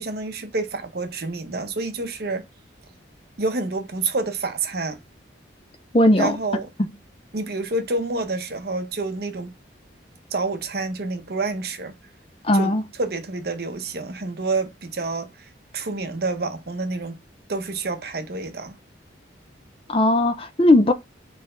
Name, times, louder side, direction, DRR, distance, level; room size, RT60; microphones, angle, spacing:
voice 1, 0.0-2.4 3.4-5.0 6.2-6.7 7.3-9.5 10.3-11.9 12.5-15.3 15.7-17.2 17.5-18.8, right 3 dB, 55° right, 0.7 m, -28 dB
voice 2, 5.9-6.4 12.4-12.8 19.9-20.9, left 1 dB, 30° left, 0.5 m, -17 dB
4.1 x 3.3 x 3.7 m
head